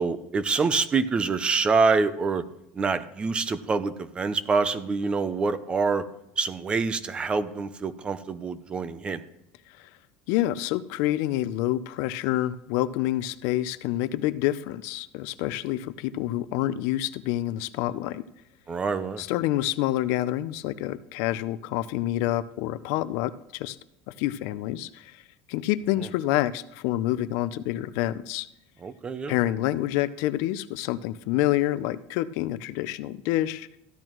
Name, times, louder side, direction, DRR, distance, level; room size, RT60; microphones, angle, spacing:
voice 1, 0.0-2.4 2.7-6.0 6.4-9.2 18.7-19.2 28.8-29.4, right 4 dB, 20° right, 14 dB, 0.5 m, -26 dB
voice 2, 10.3-18.2 19.2-23.8 24.2-25.2 25.5-28.5 29.3-33.7, left 14 dB, 65° left, 15 dB, 0.5 m, -27 dB
14.0 x 11.0 x 3.1 m, 0.82 s
cardioid pair, 155°, 5 cm